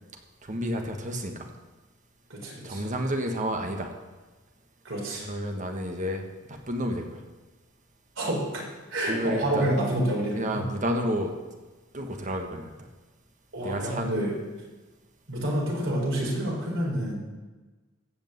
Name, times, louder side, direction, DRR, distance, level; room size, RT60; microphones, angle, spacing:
voice 1, 0.4-1.5 2.6-3.9 5.2-7.2 9.0-9.7 10.3-11.3 11.9-12.7 13.6-14.1, equal, 40° right, 4 dB, 1.4 m, -30 dB
voice 2, 2.3-2.8 4.8-5.3 8.2-10.6 13.5-14.3 15.3-17.1, right 1 dB, 70° right, -4 dB, 4.3 m, -28 dB
15.0 x 5.1 x 8.0 m, 1.2 s
head